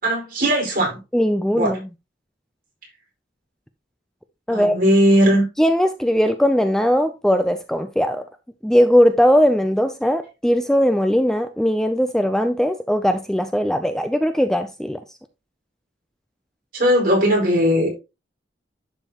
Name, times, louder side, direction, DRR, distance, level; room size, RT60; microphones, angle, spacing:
voice 1, 0.0-1.0 1.5-1.8 4.5-5.4 16.7-17.9, equal, 50° right, 4.9 m, -18 dB
voice 2, 1.1-1.8 4.5-4.8 5.6-8.2 8.6-15.0, equal, 5° left, 0.4 m, -19 dB
11.0 x 5.6 x 2.9 m
head